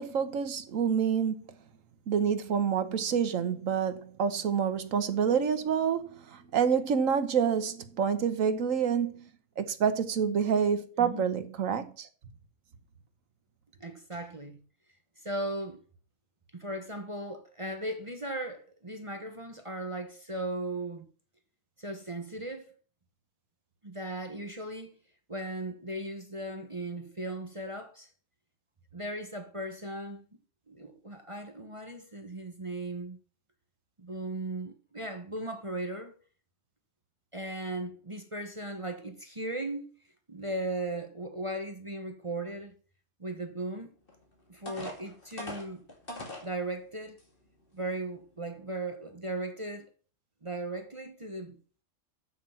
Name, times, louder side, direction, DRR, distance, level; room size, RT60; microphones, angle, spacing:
voice 1, 0.0-1.4 2.1-9.3 9.6-12.1, right 7 dB, 70° right, 1.4 m, -28 dB
voice 2, 13.8-14.6 15.2-15.8 16.5-21.0 21.8-22.7 23.8-25.0 25.3-28.1 28.9-30.4 30.7-33.2 34.0-36.1 37.3-39.9 40.3-42.7 43.2-43.9 44.5-45.8 46.4-47.2 47.7-49.9 50.4-51.6, right 1 dB, 25° right, 1.0 m, -37 dB
sound 1, 44.1-44.2 44.7-46.5 47.2-47.3 47.8-48.0, left 1 dB, 40° left, 2.4 m, -41 dB
7.4 x 6.7 x 5.7 m
omnidirectional pair, 1.5 m